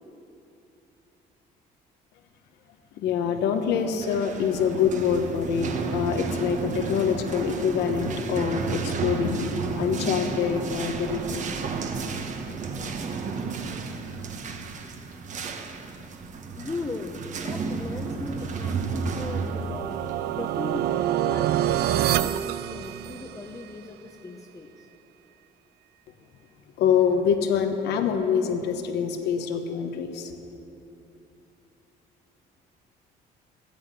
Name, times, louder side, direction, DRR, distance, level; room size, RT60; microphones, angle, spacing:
voice 1, 2.9-11.6 12.5-12.6 26.8-30.4, left 7 dB, 80° left, 7 dB, 1.1 m, -25 dB
sound 1, 3.8-21.2, right 4 dB, 45° right, 1.2 m, -32 dB
voice 2, 16.5-20.0 20.3-24.9, left 3 dB, 20° left, 2 dB, 0.8 m, -38 dB
sound 2, 18.4-23.6, right 12 dB, 70° right, 0.4 m, -27 dB
14.5 x 8.1 x 8.1 m, 2.9 s
cardioid pair, 110°, 17 cm